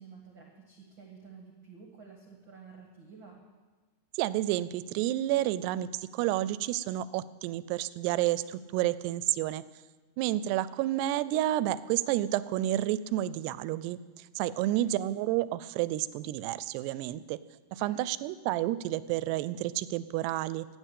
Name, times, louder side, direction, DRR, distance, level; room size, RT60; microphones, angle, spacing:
voice 1, 0.0-3.4 14.6-14.9 17.7-18.0, right 5 dB, 50° right, 1 dB, 1.5 m, -51 dB
voice 2, 4.2-9.6 10.2-14.0 14.4-17.4 17.7-20.7, right 14 dB, 85° right, 16 dB, 2.7 m, -30 dB
15.5 x 9.5 x 8.2 m, 1.3 s
omnidirectional pair, 4.7 m